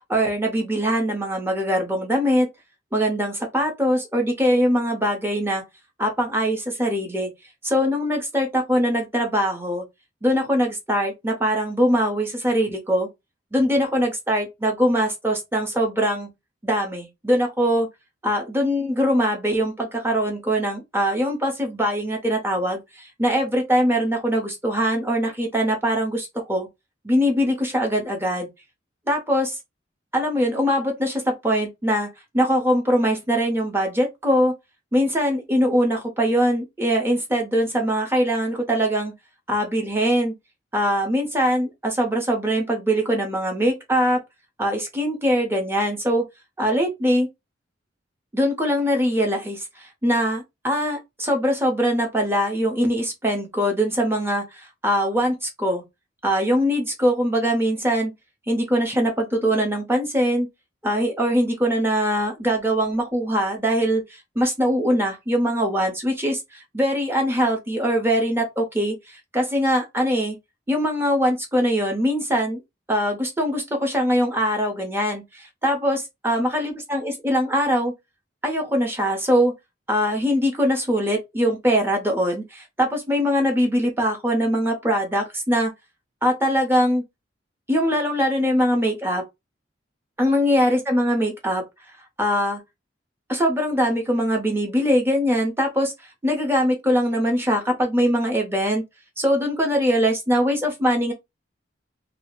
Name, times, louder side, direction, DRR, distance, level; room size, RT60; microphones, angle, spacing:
voice 1, 0.1-2.5 2.9-5.6 6.0-7.3 7.6-9.8 10.2-13.1 13.5-16.3 16.6-17.9 18.2-26.7 27.0-28.5 29.1-29.6 30.1-32.1 32.3-34.5 34.9-39.1 39.5-40.3 40.7-44.2 44.6-46.3 46.6-47.3 48.3-55.8 56.2-58.1 58.5-60.5 60.8-70.4 70.7-72.6 72.9-77.9 78.4-79.5 79.9-85.7 86.2-87.0 87.7-89.2 90.2-91.6 92.2-92.6 93.3-95.9 96.2-98.8 99.2-101.1, equal, 10° right, 0.6 m, -22 dB
2.3 x 2.0 x 2.9 m
head